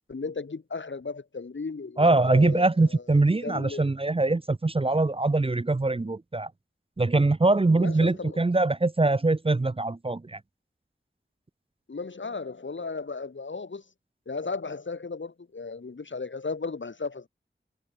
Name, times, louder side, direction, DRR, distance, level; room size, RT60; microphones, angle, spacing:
voice 1, 0.1-3.0 3.4-3.9 7.7-8.4 11.9-13.8 14.3-17.3, left 4 dB, 65° left, 1.1 m, -35 dB
voice 2, 2.0-6.5 7.0-10.4, right 2 dB, 25° right, 0.5 m, -23 dB
wide cardioid pair, 45°, 21 cm